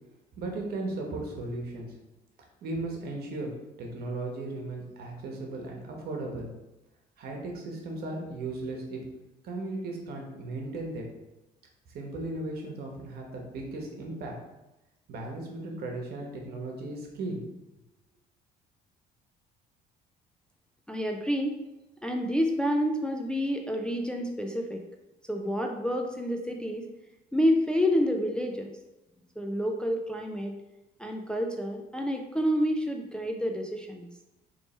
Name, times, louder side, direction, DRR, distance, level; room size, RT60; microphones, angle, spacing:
voice 1, 0.4-1.9 2.6-3.5 3.8-6.5 7.2-9.0 9.4-11.1 11.9-14.3 15.1-17.4, right 2 dB, 65° right, 1 dB, 1.1 m, -36 dB
voice 2, 20.9-21.6 22.0-24.8 25.3-26.9 27.3-28.7 29.4-30.5 31.0-34.1, equal, 5° left, 2 dB, 0.3 m, -28 dB
4.1 x 3.1 x 3.2 m, 0.98 s
cardioid pair, 110°, 17 cm